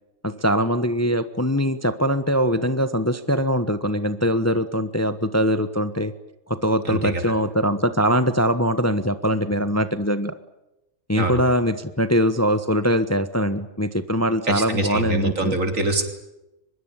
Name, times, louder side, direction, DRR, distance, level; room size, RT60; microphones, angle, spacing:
voice 1, 0.2-6.1 6.5-10.3 11.1-15.6, equal, 10° left, 12 dB, 1.1 m, -22 dB
voice 2, 6.9-7.2 11.1-11.4 14.5-16.0, right 2 dB, 65° right, 7 dB, 3.9 m, -24 dB
24.0 x 21.5 x 9.0 m, 0.92 s
omnidirectional pair, 1.5 m